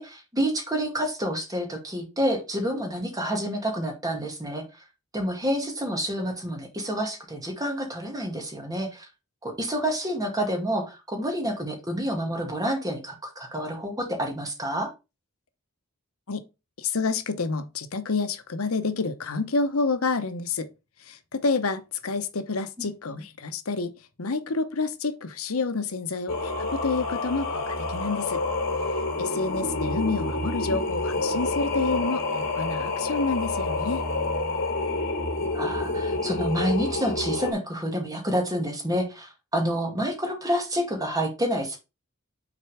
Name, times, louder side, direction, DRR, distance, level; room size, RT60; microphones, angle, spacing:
voice 1, 0.0-4.8 5.1-9.1 9.4-14.9 30.7-30.9 35.5-41.8, equal, 15° right, 2.1 m, -28 dB
voice 2, 16.8-20.7 21.0-23.9 24.2-28.4 29.2-34.0, left 4 dB, 80° left, 0.9 m, -28 dB
Singing, 26.3-37.5, left 2 dB, 60° left, 3.2 m, -28 dB
6.3 x 4.4 x 4.9 m
head